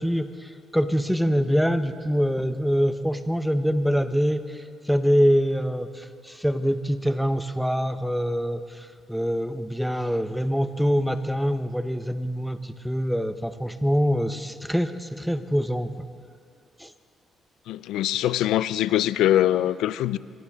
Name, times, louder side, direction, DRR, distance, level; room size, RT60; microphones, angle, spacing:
voice 1, 0.0-16.1 16.8-16.9, equal, ahead, 9 dB, 1.1 m, -25 dB
voice 2, 17.7-20.2, left 12 dB, 90° left, 16 dB, 0.5 m, -23 dB
28.0 x 25.0 x 3.8 m, 2.2 s
cardioid pair, 90°, 0 cm